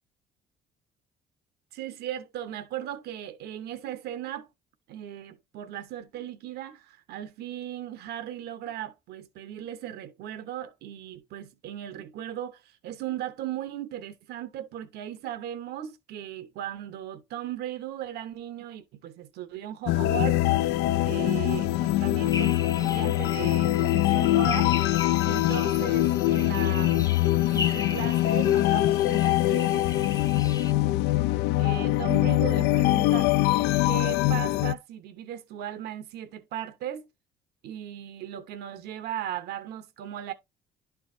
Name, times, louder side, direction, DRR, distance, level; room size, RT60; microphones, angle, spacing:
voice 1, 1.7-4.5 4.9-20.5 21.0-24.7 25.2-27.1 27.5-29.9 31.6-33.3 33.8-37.1 37.6-40.3, right 11 dB, 75° right, 0.9 m, -37 dB
sound 1, 19.9-34.7, left 15 dB, 80° left, 0.4 m, -23 dB
sound 2, 22.2-30.7, left 4 dB, 20° left, 0.6 m, -39 dB
11.0 x 4.6 x 2.6 m
cardioid pair, 110°, 17 cm